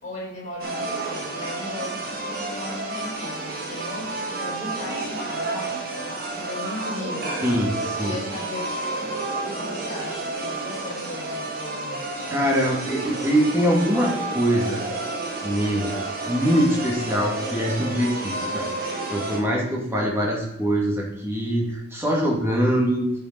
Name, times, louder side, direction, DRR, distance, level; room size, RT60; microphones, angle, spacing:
voice 1, 0.0-7.4 7.9-12.4, left 2 dB, 35° left, -5 dB, 3.9 m, -37 dB
sound 1, 0.6-19.4, right 2 dB, 45° right, 1.8 m, -30 dB
voice 2, 7.4-8.2 12.3-14.8 15.4-15.9 16.3-23.2, equal, 15° right, -2 dB, 2.3 m, -23 dB
10.0 x 7.0 x 4.1 m, 0.81 s
head